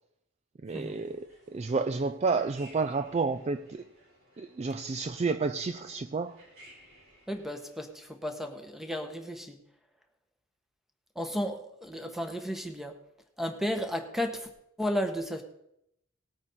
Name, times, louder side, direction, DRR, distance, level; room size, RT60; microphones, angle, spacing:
voice 1, 0.6-3.8 4.4-6.4, right 4 dB, 30° right, 0.3 m, -30 dB
sound 1, 0.7-8.1, equal, 80° right, 5.4 m, -58 dB
voice 2, 7.3-9.6 11.1-13.0 13.4-14.5 14.8-15.4, equal, ahead, 1.2 m, -33 dB
18.5 x 8.8 x 4.2 m
head